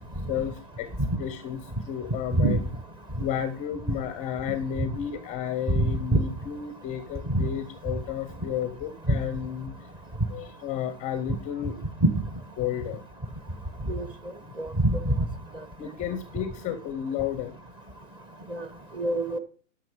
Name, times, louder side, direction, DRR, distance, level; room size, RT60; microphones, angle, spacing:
voice 1, 0.3-0.9 1.2-1.6 1.8-2.6 3.2-9.7 10.3-11.8 12.6-13.0 15.8-17.5, left 9 dB, 20° left, 12 dB, 0.6 m, -32 dB
voice 2, 14.6-15.1 18.5-18.6 19.0-19.4, right 1 dB, 15° right, 11 dB, 1.0 m, -23 dB
12.0 x 5.8 x 5.0 m, 0.40 s
hypercardioid pair, 125°, 37 cm